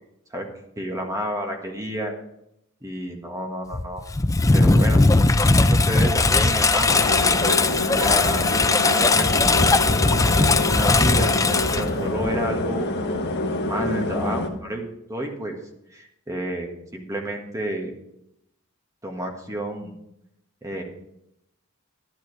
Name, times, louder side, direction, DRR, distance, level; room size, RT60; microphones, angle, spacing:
voice 1, 0.8-2.1 2.8-4.0 4.5-5.0 5.6-7.0 7.2-8.5 8.9-10.1 10.4-11.3 11.7-12.9 13.5-15.6 15.9-17.9 19.0-19.9 20.6-20.8, right 1 dB, 15° right, 2 dB, 1.6 m, -30 dB
Engine, 3.7-12.5, left 3 dB, 15° left, 0.4 m, -19 dB
sound 1, 6.9-14.5, left 2 dB, 50° left, 1.4 m, -26 dB
11.5 x 11.0 x 3.4 m, 0.80 s
head